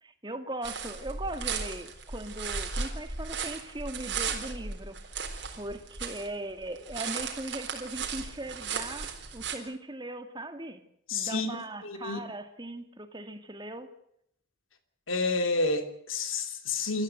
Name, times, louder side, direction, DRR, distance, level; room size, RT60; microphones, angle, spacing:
voice 1, 0.0-5.2 5.6-10.8 11.1-13.9, right 1 dB, 20° right, 8 dB, 2.0 m, -39 dB
sound 1, 0.6-6.3 6.6-9.6, right 5 dB, 60° right, 3.9 m, -36 dB
voice 2, 11.1-12.2 15.1-17.0, left 3 dB, 85° left, 8 dB, 3.0 m, -30 dB
27.0 x 14.0 x 7.9 m, 0.72 s
head